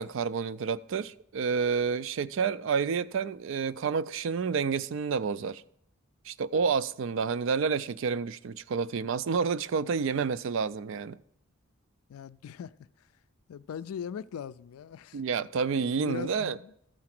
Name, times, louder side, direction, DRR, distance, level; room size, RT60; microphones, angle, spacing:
voice 1, 0.0-5.6 6.2-11.2 15.1-16.6, right 5 dB, 60° right, 0.3 m, -29 dB
voice 2, 12.1-13.1 13.5-15.2 16.0-16.7, left 8 dB, 80° left, 0.3 m, -40 dB
13.5 x 4.8 x 5.9 m
head